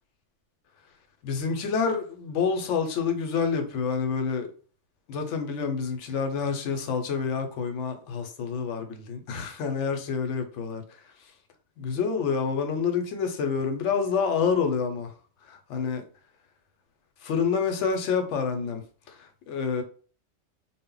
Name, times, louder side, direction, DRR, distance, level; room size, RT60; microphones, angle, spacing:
voice 1, 1.2-4.5 5.1-10.8 11.8-15.1 15.5-16.0 17.2-19.8, left 5 dB, 75° left, 0.9 m, -28 dB
2.0 x 2.0 x 3.7 m
omnidirectional pair, 1.2 m